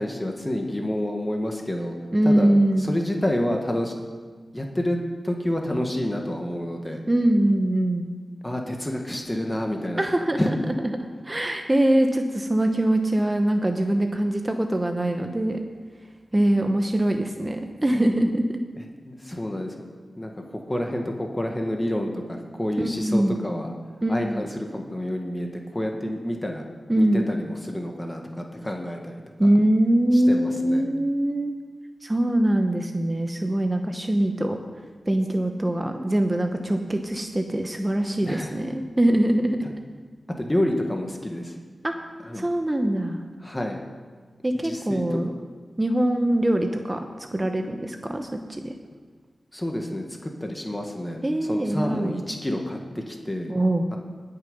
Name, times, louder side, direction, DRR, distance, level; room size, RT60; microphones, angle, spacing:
voice 1, 0.0-2.0 2.2-2.5 2.8-3.9 4.5-5.0 5.2-7.0 8.4-10.0 10.4-10.5 19.0-19.8 20.2-23.7 24.1-26.6 27.0-29.2 30.1-30.8 38.2-38.6 39.6-39.7 40.4-41.5 42.3-42.5 43.4-43.8 44.6-45.2 49.5-53.5 53.9-54.0, left 1 dB, 15° left, 2 dB, 1.6 m, -29 dB
voice 2, 2.1-2.9 7.1-8.1 10.0-10.4 10.7-11.0 11.2-15.6 16.3-18.4 22.8-23.4 24.0-24.4 26.9-27.3 29.4-31.5 32.0-34.6 35.1-39.6 41.8-41.9 42.3-43.2 44.4-45.3 45.8-47.0 47.3-48.7 51.2-52.2 53.5-53.9, right 1 dB, 20° right, 5 dB, 0.9 m, -23 dB
20.0 x 6.9 x 5.4 m, 1.5 s
wide cardioid pair, 75°, 0 cm